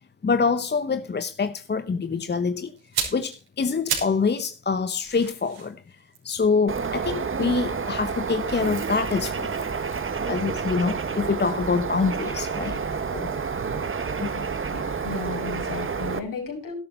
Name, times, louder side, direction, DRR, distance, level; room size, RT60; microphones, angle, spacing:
voice 1, 0.2-2.7 3.1-6.0 6.2-9.5 10.3-12.8 13.1-13.3 14.2-14.5, left 5 dB, 25° left, 0.9 m, -25 dB
sound 1, 2.8-4.3 4.6-7.8 8.6-10.7 11.0-11.1, right 7 dB, 70° right, 5.6 m, -35 dB
Bird, 6.7-16.2, right 5 dB, 30° right, 1.5 m, -29 dB
voice 2, 14.7-16.7, left 4 dB, 55° left, 6.0 m, -34 dB
12.5 x 12.0 x 4.4 m
hypercardioid pair, 55°, 39 cm